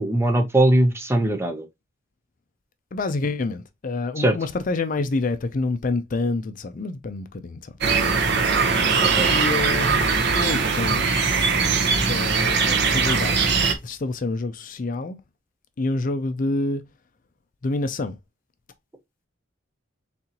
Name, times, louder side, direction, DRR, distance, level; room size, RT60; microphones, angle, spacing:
voice 1, 0.0-1.7 4.2-4.4 9.0-9.3, right 1 dB, 15° right, 0.6 m, -20 dB
voice 2, 2.9-8.0 9.3-11.3 12.1-13.5 13.8-15.2 15.8-16.8 17.6-18.2, left 3 dB, 40° left, 0.4 m, -27 dB
sound 1, 7.8-13.7, right 5 dB, 60° right, 0.8 m, -21 dB
4.2 x 3.7 x 2.8 m
head